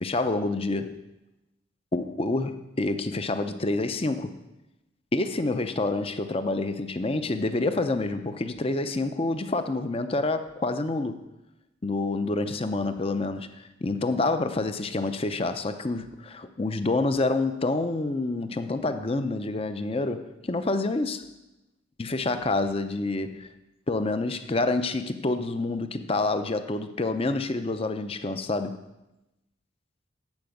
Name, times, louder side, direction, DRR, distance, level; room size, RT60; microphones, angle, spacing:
voice 1, 0.0-1.0 1.9-4.4 5.1-11.2 11.8-21.2 22.0-23.5 23.9-28.8, left 2 dB, 30° left, 9 dB, 0.6 m, -28 dB
10.5 x 5.1 x 7.9 m, 0.95 s
head